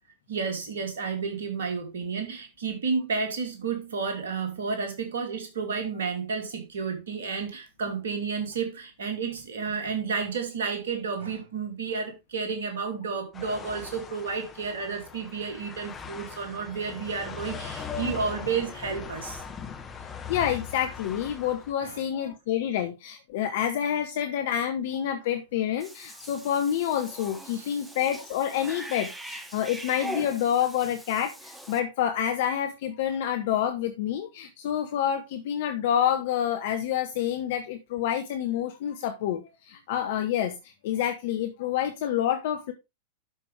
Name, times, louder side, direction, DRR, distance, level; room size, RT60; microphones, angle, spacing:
voice 1, 0.3-19.4 21.8-22.0 27.5-27.8, right 5 dB, 65° right, 2.4 m, -31 dB
sound 1, 13.3-21.7, left 6 dB, 20° left, 1.6 m, -40 dB
voice 2, 20.3-40.5 40.8-42.7, left 10 dB, 55° left, 0.9 m, -28 dB
Cat / Bathtub (filling or washing), 25.8-31.8, right 1 dB, 5° right, 1.4 m, -41 dB
12.0 x 5.3 x 3.3 m
figure-of-eight pair, 90°, 0 cm